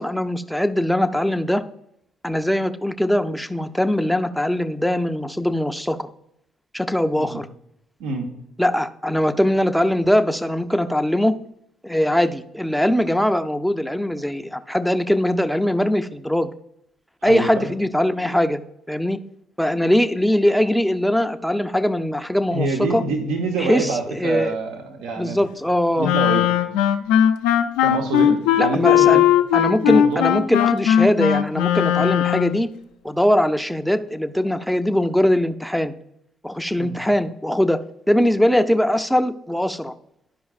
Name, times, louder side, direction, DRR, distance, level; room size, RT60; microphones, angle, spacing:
voice 1, 0.0-1.6 2.2-6.1 6.7-7.5 8.6-11.3 11.8-16.5 17.2-18.6 18.9-19.2 19.6-23.0 23.6-24.5 25.2-26.1 28.6-29.2 29.5-32.7 33.0-35.9 36.4-37.8 38.1-39.9, left 1 dB, ahead, 9 dB, 0.5 m, -21 dB
voice 2, 17.2-17.7 22.5-25.4 25.9-26.4 27.8-29.3 29.8-30.3 31.9-32.1 36.8-37.0, right 3 dB, 80° right, 2 dB, 1.0 m, -26 dB
Wind instrument woodwind instrument, 26.0-32.6, left 10 dB, 90° left, 0.4 m, -18 dB
12.0 x 5.0 x 2.4 m, 0.78 s
supercardioid pair, 65°, 0 cm